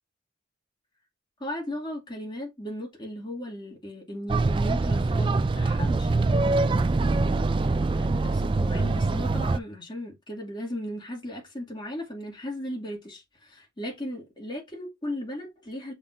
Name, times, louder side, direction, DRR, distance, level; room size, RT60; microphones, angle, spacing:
voice 1, 1.4-7.0 7.2-15.9, left 1 dB, 25° left, 2.4 m, -37 dB
sound 1, 4.3-9.6, right 3 dB, 25° right, 0.3 m, -24 dB
6.9 x 5.4 x 2.6 m
head